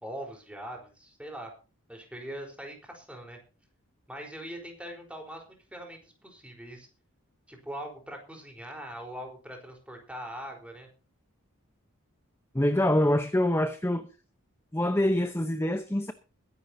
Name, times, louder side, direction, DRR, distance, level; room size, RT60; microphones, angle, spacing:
voice 1, 0.0-1.5 1.9-3.4 4.1-6.9 7.5-10.9, right 1 dB, 5° right, 4.0 m, -42 dB
voice 2, 12.5-14.1 14.7-16.1, left 1 dB, 10° left, 0.8 m, -25 dB
22.0 x 11.0 x 2.8 m
head